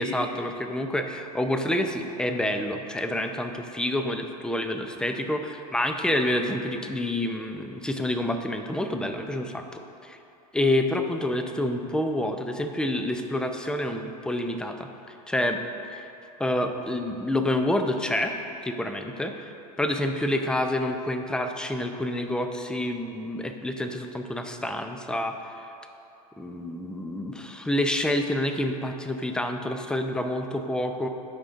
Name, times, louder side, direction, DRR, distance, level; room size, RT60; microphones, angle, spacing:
voice 1, 0.0-9.5 10.1-10.2 10.5-14.9 15.3-15.6 16.4-18.3 18.6-19.3 19.8-25.3 26.4-31.1, left 1 dB, 5° left, 6 dB, 0.5 m, -28 dB
15.0 x 5.0 x 2.5 m, 2.7 s
hypercardioid pair, 105°, 20 cm